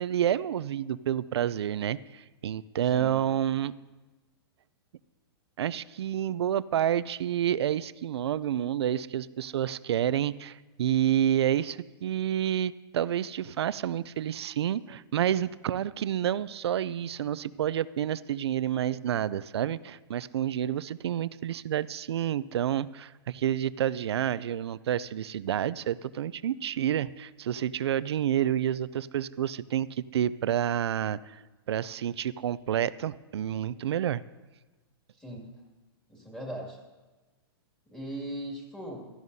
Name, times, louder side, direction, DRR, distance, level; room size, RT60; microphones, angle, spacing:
voice 1, 0.0-3.7 5.6-31.4 31.7-34.2, right 10 dB, 85° right, 18 dB, 0.4 m, -29 dB
voice 2, 2.9-3.3 35.2-35.5 36.1-36.8 37.9-39.1, right 1 dB, 5° left, -3 dB, 2.3 m, -39 dB
16.0 x 13.0 x 2.7 m, 1.2 s
hypercardioid pair, 155°, 13 cm